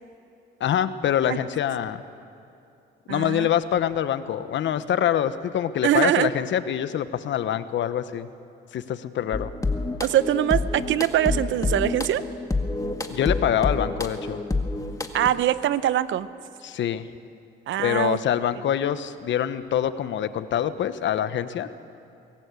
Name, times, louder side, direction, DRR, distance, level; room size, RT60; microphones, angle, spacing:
voice 1, 0.6-2.0 3.1-8.3 8.7-9.5 13.1-14.4 16.6-17.1 17.8-21.7, left 10 dB, 70° left, 13 dB, 1.0 m, -25 dB
voice 2, 3.1-3.5 5.8-6.3 10.0-12.2 15.1-16.3 17.7-18.2, right 12 dB, 75° right, 15 dB, 0.8 m, -23 dB
sound 1, 9.3-15.3, left 3 dB, 15° left, 1.8 m, -28 dB
23.5 x 18.0 x 8.3 m, 2.6 s
cardioid pair, 90°, 20 cm